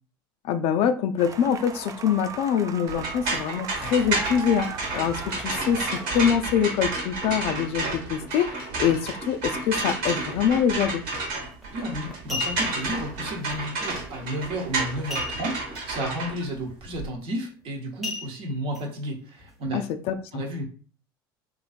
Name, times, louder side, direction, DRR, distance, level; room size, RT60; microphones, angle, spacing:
voice 1, 0.4-11.0 19.7-20.4, left 8 dB, 55° left, 0.4 m, -25 dB
sound 1, 1.2-6.3, right 6 dB, 30° right, 0.3 m, -38 dB
sound 2, 2.9-17.1, right 3 dB, 70° right, 1.3 m, -31 dB
sound 3, 11.4-11.6 12.1-12.9 15.1-15.8 16.1-16.2 16.7-16.9 18.0-18.8 19.4-19.5, left 3 dB, ahead, 0.9 m, -34 dB
voice 2, 11.7-19.8 20.3-20.6, right 1 dB, 45° right, 1.0 m, -32 dB
3.1 x 2.5 x 2.4 m
hypercardioid pair, 75°, 12 cm